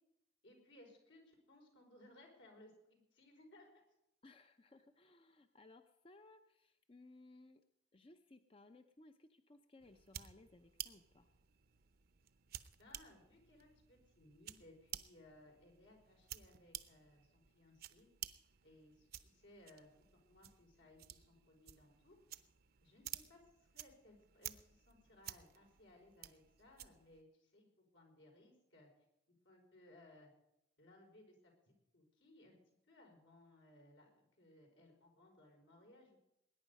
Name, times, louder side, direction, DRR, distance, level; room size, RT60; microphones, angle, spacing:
voice 1, 0.4-3.8 12.8-18.1 18.6-22.2 22.8-28.9 29.4-30.3 30.8-32.5 32.9-36.2, left 1 dB, 75° left, 1 dB, 4.8 m, -64 dB
voice 2, 4.2-7.6 7.9-11.3, left 2 dB, 30° left, 8 dB, 0.6 m, -62 dB
sound 1, 9.8-27.2, right 12 dB, 55° right, 0.7 m, -53 dB
20.5 x 10.0 x 5.3 m, 0.82 s
head